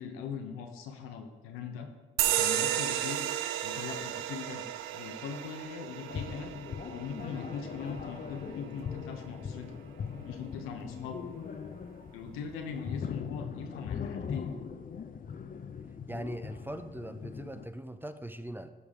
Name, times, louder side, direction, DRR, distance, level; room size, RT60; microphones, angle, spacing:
voice 1, 0.0-1.9 2.2-3.3 3.6-4.6 4.9-6.5 6.9-9.7 10.2-11.2 12.1-14.6, left 6 dB, 90° left, 4 dB, 0.9 m, -41 dB
sound 1, 2.2-9.2, right 11 dB, 85° right, 0.4 m, -33 dB
sound 2, 6.1-17.7, left 6 dB, 40° left, 0.6 m, -40 dB
voice 2, 16.1-18.7, right 1 dB, 10° right, 10 dB, 0.6 m, -40 dB
12.5 x 5.0 x 3.6 m, 1.2 s
supercardioid pair, 55°, 21 cm